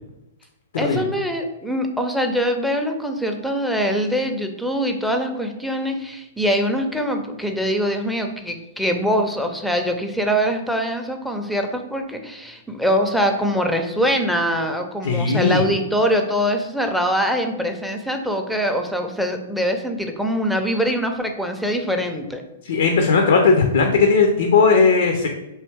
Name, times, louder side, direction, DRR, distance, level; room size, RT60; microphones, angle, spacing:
voice 1, 0.8-22.4, equal, ahead, 4 dB, 0.5 m, -23 dB
voice 2, 15.0-15.6 22.6-25.3, left 4 dB, 65° left, 4 dB, 0.5 m, -17 dB
3.1 x 2.8 x 3.4 m, 0.92 s
figure-of-eight pair, 115°, 0 cm